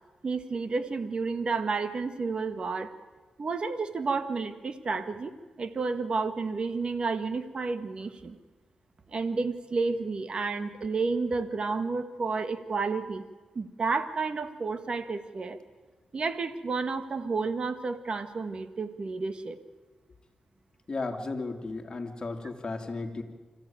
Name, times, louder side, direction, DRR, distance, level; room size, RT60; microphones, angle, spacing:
voice 1, 0.2-2.9 3.4-8.4 9.1-13.2 13.6-15.6 16.1-19.6, right 4 dB, 45° right, 10 dB, 1.6 m, -31 dB
voice 2, 20.9-23.2, left 3 dB, 35° left, 3 dB, 2.9 m, -34 dB
25.5 x 15.0 x 9.0 m, 1.3 s
cardioid pair, 90°, 2 cm